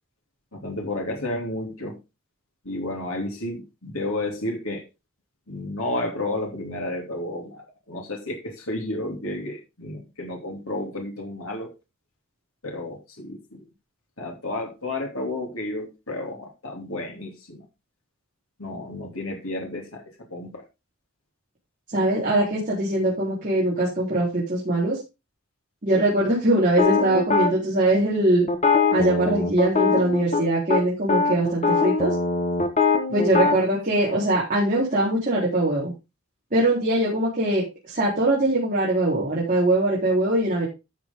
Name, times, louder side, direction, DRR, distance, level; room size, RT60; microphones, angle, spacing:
voice 1, 0.5-2.0 2.6-4.8 5.5-11.7 12.6-13.6 14.2-17.7 18.6-20.0 20.3-20.6 22.4-22.5 33.3-33.6, left 2 dB, 80° left, 1 dB, 2.9 m, -32 dB
voice 2, 21.9-25.0 25.8-28.5 28.9-32.1 33.1-35.9 36.5-40.7, right 1 dB, 40° right, -6 dB, 4.0 m, -22 dB
sound 1, 26.8-27.5 28.5-30.4 30.7-30.8 31.1-33.6, left 4 dB, 35° left, 1.4 m, -21 dB
13.0 x 6.7 x 3.7 m, 0.26 s
head